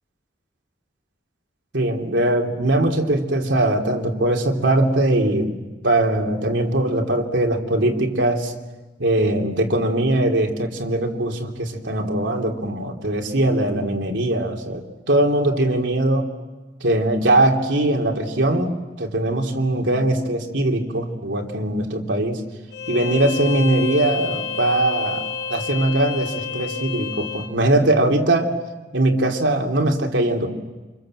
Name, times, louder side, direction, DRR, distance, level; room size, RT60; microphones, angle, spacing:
voice 1, 1.7-5.5 5.8-8.5 9.0-16.3 16.8-22.4 22.9-28.5 28.9-30.5, right 1 dB, 90° right, 2 dB, 3.1 m, -21 dB
Bowed string instrument, 22.7-27.5, left 6 dB, 65° left, 3.9 m, -29 dB
28.5 x 26.5 x 7.8 m, 1.2 s
head